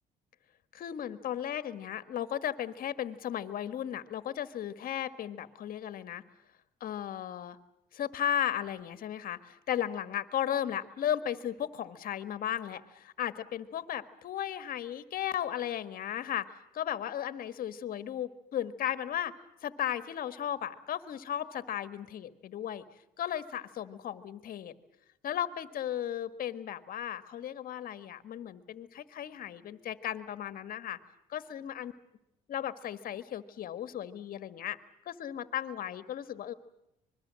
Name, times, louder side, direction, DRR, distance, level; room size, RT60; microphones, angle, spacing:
voice 1, 0.7-6.2 6.8-7.6 7.9-19.3 19.6-22.9 23.2-24.7 25.2-31.0 31.3-31.9 32.5-34.8 35.0-36.5, left 10 dB, 60° left, 12 dB, 1.6 m, -35 dB
25.5 x 22.0 x 7.6 m, 0.85 s
cardioid pair, 110°, 17 cm